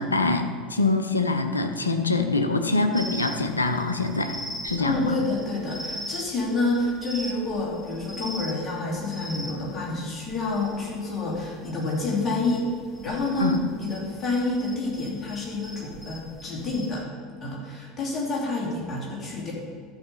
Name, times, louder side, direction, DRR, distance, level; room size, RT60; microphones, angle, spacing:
voice 1, 0.0-5.2 13.4-13.6, left 3 dB, 80° left, 6 dB, 0.7 m, -24 dB
sound 1, 2.9-17.0, equal, 10° left, 1.1 m, -41 dB
voice 2, 4.8-12.7 13.0-13.5 13.8-17.0 17.4-19.5, left 2 dB, 30° left, -4 dB, 2.8 m, -28 dB
12.0 x 4.9 x 5.7 m, 2.1 s
figure-of-eight pair, 75°, 0 cm